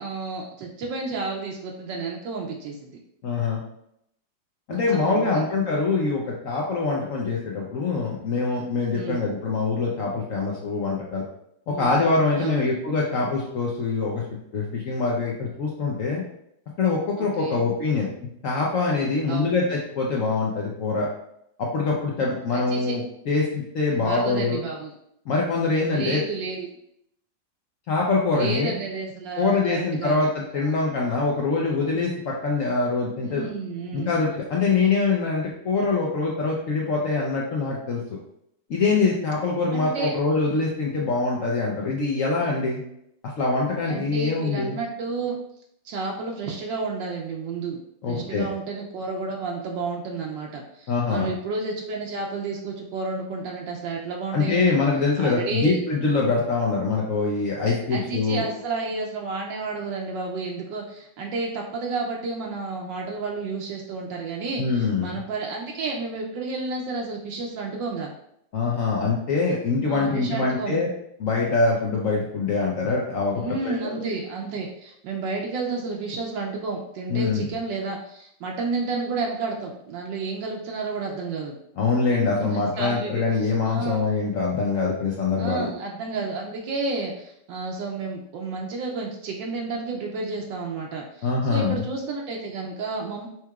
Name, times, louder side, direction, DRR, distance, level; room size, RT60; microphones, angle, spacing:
voice 1, 0.0-2.9 4.7-5.4 8.9-9.2 11.7-12.1 12.4-12.7 17.2-17.6 19.3-19.7 22.5-22.9 24.0-24.9 25.9-26.7 28.3-30.3 30.6-30.8 33.2-34.1 39.7-40.1 43.9-45.4 45.8-47.8 48.1-54.8 55.2-55.8 57.9-68.1 69.9-70.8 73.4-81.6 82.4-84.1 85.4-93.3, right 3 dB, 80° right, 0 dB, 1.2 m, -31 dB
voice 2, 3.2-3.6 4.7-11.2 11.7-14.2 14.5-16.2 16.8-18.1 18.4-21.1 21.6-24.6 25.3-26.2 27.9-28.7 29.4-33.5 33.9-38.2 38.7-42.8 43.4-44.8 48.0-48.5 50.9-51.3 54.3-58.4 64.6-65.1 68.5-70.9 71.2-74.0 77.1-77.5 81.8-85.7 91.2-91.8, left 4 dB, 75° left, -2 dB, 0.7 m, -24 dB
5.6 x 3.0 x 2.3 m, 0.75 s
omnidirectional pair, 2.0 m